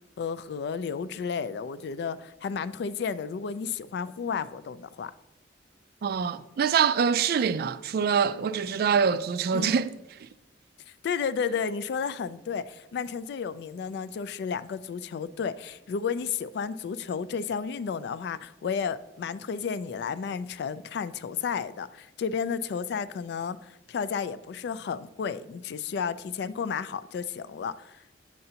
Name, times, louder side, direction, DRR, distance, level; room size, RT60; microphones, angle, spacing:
voice 1, 0.2-5.1 9.5-9.7 11.0-28.0, left 6 dB, 65° left, 0.3 m, -32 dB
voice 2, 6.0-9.9 10.2-10.3, right 6 dB, 60° right, 0.3 m, -25 dB
7.6 x 6.8 x 2.8 m
head